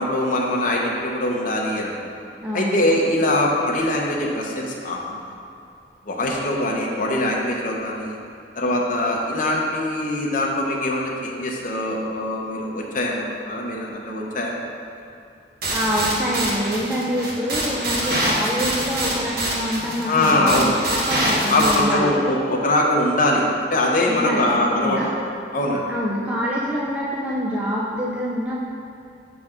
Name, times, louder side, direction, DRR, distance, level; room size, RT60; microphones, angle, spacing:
voice 1, 0.0-1.9 2.5-5.3 6.1-8.2 8.6-13.2 13.5-14.6 20.1-20.7 21.5-25.0 25.5-25.8, left 1 dB, 50° left, -1 dB, 0.8 m, -22 dB
voice 2, 2.4-2.8 15.7-22.1 24.1-25.1 25.9-28.6, equal, 10° right, -6 dB, 0.5 m, -26 dB
sound 1, 15.6-21.8, right 1 dB, 60° right, 1.1 m, -25 dB
5.9 x 4.1 x 5.0 m, 2.4 s
head